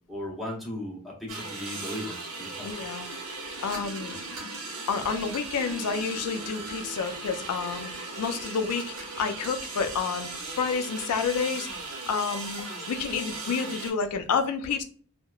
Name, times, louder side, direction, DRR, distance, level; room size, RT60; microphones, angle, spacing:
voice 1, 0.1-2.7, left 1 dB, ahead, -3 dB, 0.6 m, -37 dB
sound 1, 1.3-13.9, right 3 dB, 75° right, 0.8 m, -37 dB
voice 2, 2.6-3.1 3.6-4.2 4.9-7.9 8.2-10.3 10.6-11.7 12.1-14.8, left 5 dB, 85° left, 8 dB, 0.4 m, -29 dB
2.8 x 2.1 x 2.3 m, 0.43 s
head